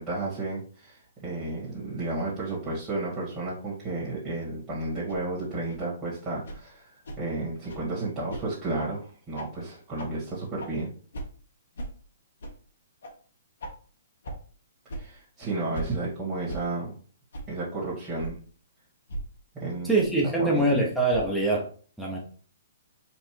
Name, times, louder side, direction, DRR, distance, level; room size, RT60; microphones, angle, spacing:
voice 1, 0.0-6.9 7.2-10.9 15.0-16.9 17.5-18.4 19.6-19.9 20.2-20.6, right 2 dB, 20° right, -7 dB, 1.8 m, -32 dB
sound 1, 5.1-5.2 5.7-5.8 6.4-6.6 7.0-7.2 7.7-7.8 8.3-8.4 8.8-8.9 9.3-9.5 10.0-10.1 10.6-10.7 11.1-11.3 11.7-11.9 12.4-12.5 13.0-13.1 13.6-13.7 14.2-14.4 14.9-15.0 15.7-15.9 16.5-16.6 17.3-17.4 18.2-18.3 19.1-19.2 19.9-20.1 21.1-21.3, right 1 dB, 70° left, 1.3 m, -36 dB
voice 2, 19.8-21.7 22.0-22.2, right 2 dB, ahead, -3 dB, 1.0 m, -24 dB
4.5 x 2.5 x 4.5 m, 0.42 s
hypercardioid pair, 130°, 0 cm